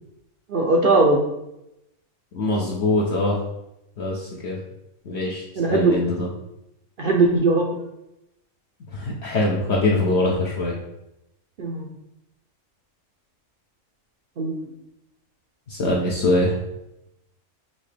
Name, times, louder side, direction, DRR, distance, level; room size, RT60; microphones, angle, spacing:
voice 1, 0.5-1.2 5.6-6.0 7.0-7.9 11.6-11.9 14.4-14.6, right 3 dB, 60° right, 0 dB, 0.6 m, -19 dB
voice 2, 2.3-3.4 4.0-4.6 5.1-5.4 5.7-6.3 8.9-10.7 15.7-16.5, left 2 dB, 60° left, -3 dB, 0.9 m, -23 dB
5.7 x 2.8 x 3.2 m, 0.86 s
omnidirectional pair, 1.4 m